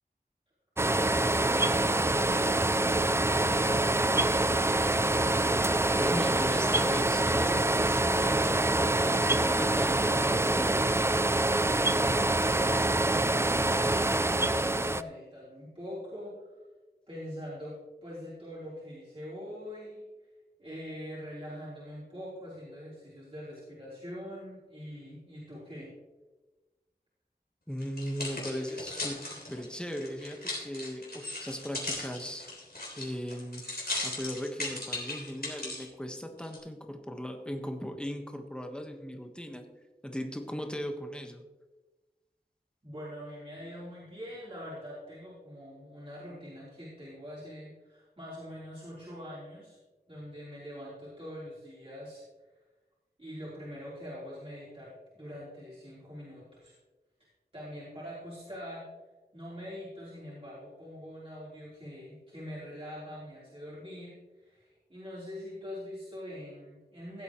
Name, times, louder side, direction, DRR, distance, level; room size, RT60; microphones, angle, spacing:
sound 1, 0.8-15.0, right 2 dB, 15° right, 0.3 m, -26 dB
voice 1, 1.1-4.3 12.0-13.2 13.5-16.5 17.1-17.8 18.0-20.0 20.6-25.9 42.8-49.8 50.1-52.2 53.2-56.7 57.5-58.8 59.3-67.2, equal, 35° right, -9 dB, 3.7 m, -43 dB
voice 2, 6.0-10.7 27.7-29.2 29.5-32.5 33.0-33.6 34.0-39.6 40.0-41.4, equal, 5° left, 4 dB, 1.3 m, -37 dB
sound 2, 27.8-35.9 36.4-36.6, left 2 dB, 70° left, 3.5 m, -37 dB
16.0 x 7.9 x 3.1 m, 1.2 s
wide cardioid pair, 50°, 17 cm